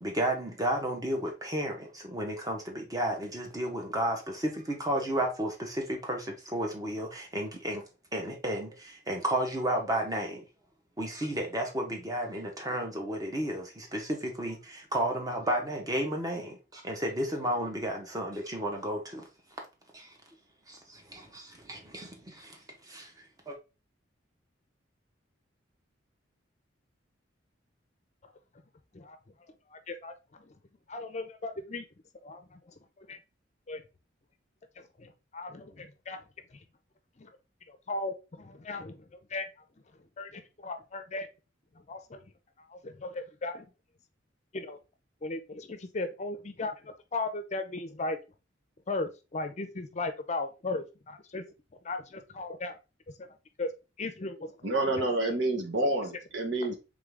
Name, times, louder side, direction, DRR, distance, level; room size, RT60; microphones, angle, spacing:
voice 1, 0.0-7.8 8.1-10.4 11.0-19.2 19.9-20.1 20.7-23.6, right 1 dB, 20° right, 1.0 m, -33 dB
voice 2, 29.7-30.5 30.9-31.8 32.2-32.6 33.0-33.2 33.7-33.8 34.8-36.2 37.2-37.3 37.7-39.0 39.3-39.5 40.2-41.3 41.9-42.2 42.7-43.7 44.5-44.8 45.2-48.2 48.9-51.4 51.8-52.8 53.2-53.3 53.6-53.7 54.0-54.9, left 2 dB, 35° left, 0.5 m, -37 dB
voice 3, 54.6-56.7, right 2 dB, 75° right, 1.2 m, -28 dB
3.7 x 3.6 x 3.4 m
head